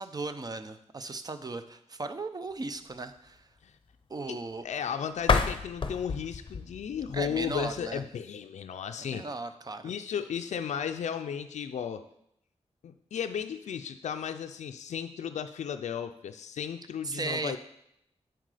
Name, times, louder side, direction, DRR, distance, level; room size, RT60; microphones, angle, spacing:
voice 1, 0.0-3.5 4.1-4.6 7.1-8.0 9.0-9.9 17.0-17.6, right 3 dB, 35° right, 10 dB, 0.6 m, -37 dB
voice 2, 4.3-9.3 9.8-12.0 12.8-17.6, left 8 dB, 85° left, 8 dB, 0.4 m, -35 dB
sound 1, 5.2-8.0, left 4 dB, 45° left, 0.6 m, -30 dB
7.6 x 4.6 x 4.9 m, 0.76 s
wide cardioid pair, 85°, 12 cm